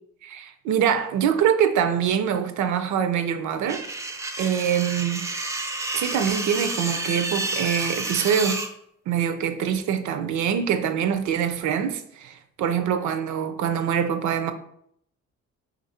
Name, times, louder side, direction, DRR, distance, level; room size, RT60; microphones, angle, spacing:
voice 1, 0.2-3.8 4.4-5.3 5.9-8.6 9.1-14.5, right 8 dB, 75° right, 0.5 m, -24 dB
sound 1, 3.7-8.7, right 2 dB, 10° right, 0.4 m, -30 dB
3.0 x 2.6 x 4.1 m
cardioid pair, 90°, 30 cm